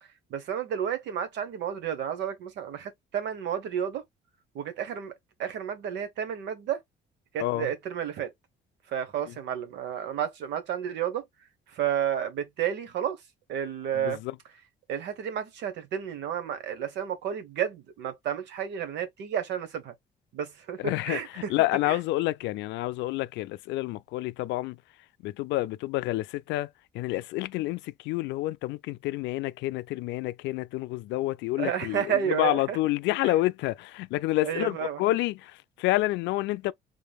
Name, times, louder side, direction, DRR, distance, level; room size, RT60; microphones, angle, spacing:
voice 1, 0.3-4.0 4.5-5.1 5.4-6.8 7.3-8.3 8.9-11.2 11.7-13.2 13.5-14.2 14.9-19.9 20.3-21.5 21.8-22.0 31.6-32.8 33.2-33.3 34.4-35.0, right 9 dB, 75° right, 1.1 m, -31 dB
voice 2, 13.9-14.4 20.8-24.8 25.2-36.7, left 17 dB, 85° left, 0.4 m, -29 dB
3.9 x 3.4 x 2.2 m
cardioid pair, 100°, 18 cm